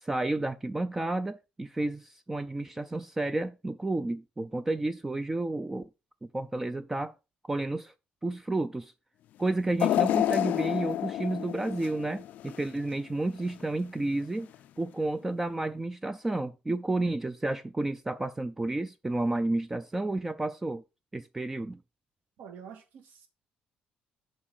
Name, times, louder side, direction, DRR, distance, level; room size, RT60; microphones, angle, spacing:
voice 1, 0.0-5.9 6.3-7.1 7.4-7.9 8.2-8.9 9.4-14.5 14.8-20.8 21.1-21.8, right 2 dB, 10° right, 0.3 m, -31 dB
sound 1, 9.8-12.9 13.4-13.5 14.5-14.6, left 12 dB, 60° left, 0.4 m, -29 dB
voice 2, 22.4-23.3, right 7 dB, 70° right, 2.1 m, -47 dB
7.4 x 4.0 x 6.3 m
cardioid pair, 160°, 3 cm